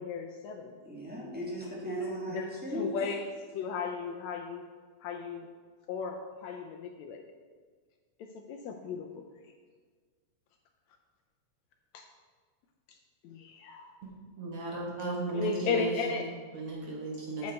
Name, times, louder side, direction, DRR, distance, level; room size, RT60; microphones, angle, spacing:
voice 1, 0.0-0.8 2.0-3.2 3.5-4.6 5.0-5.5 5.9-7.2 8.2-9.2 11.9-12.1 12.9-13.0 13.2-13.9 15.3-16.3 17.4-17.5, left 5 dB, 75° left, 3 dB, 1.8 m, -35 dB
voice 2, 0.8-3.0, right 1 dB, 5° right, -6 dB, 1.7 m, -36 dB
voice 3, 14.0-17.5, right 2 dB, 55° right, -3 dB, 2.0 m, -36 dB
8.4 x 8.0 x 4.5 m, 1.5 s
omnidirectional pair, 3.5 m